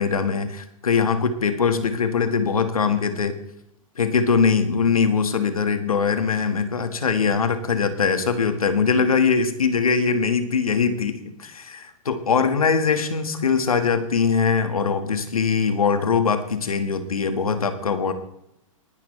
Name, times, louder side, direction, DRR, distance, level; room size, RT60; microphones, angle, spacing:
voice 1, 0.0-3.4 4.0-18.1, left 5 dB, 90° left, 9 dB, 1.7 m, -22 dB
19.5 x 11.0 x 3.3 m, 0.79 s
hypercardioid pair, 120°, 18 cm